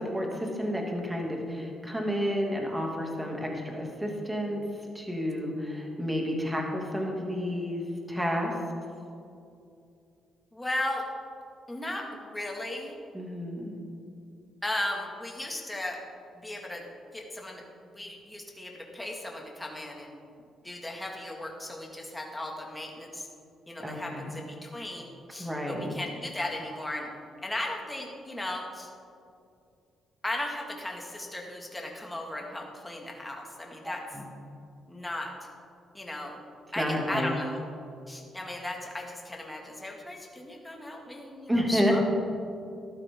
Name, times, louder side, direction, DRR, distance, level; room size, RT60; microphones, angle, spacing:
voice 1, 0.0-4.6 4.9-8.5 13.1-13.7 23.8-24.3 25.4-25.9 34.1-34.3 36.8-37.3 41.5-42.0, equal, 10° right, 0 dB, 2.5 m, -30 dB
voice 2, 10.5-11.1 11.7-13.0 14.6-16.0 16.4-16.9 17.1-20.1 20.6-23.3 23.7-27.1 27.4-28.9 30.2-34.0 34.9-35.3 35.9-36.4 36.7-37.6 38.1-42.0, left 1 dB, 10° left, 0 dB, 2.1 m, -36 dB
14.0 x 12.0 x 3.8 m, 2.5 s
cardioid pair, 90°, 0 cm